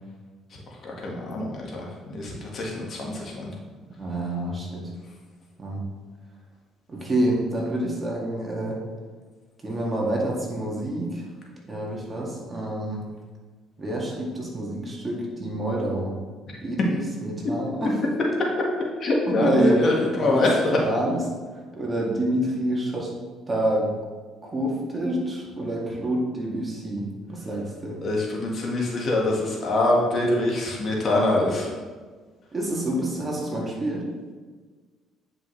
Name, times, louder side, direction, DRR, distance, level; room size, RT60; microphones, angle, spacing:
voice 1, 0.8-3.5 19.0-20.8 28.0-31.7, left 2 dB, 45° left, -2 dB, 1.7 m, -24 dB
voice 2, 4.0-4.9 5.6-5.8 6.9-8.8 9.6-11.3 11.7-13.0 13.8-16.1 16.6-18.0 19.3-19.8 20.2-21.2 21.5-23.1 23.5-23.9 24.4-28.0 32.5-34.1, right 1 dB, 25° right, -3 dB, 2.1 m, -27 dB
9.6 x 5.4 x 3.2 m, 1.4 s
cardioid pair, 90°, 0 cm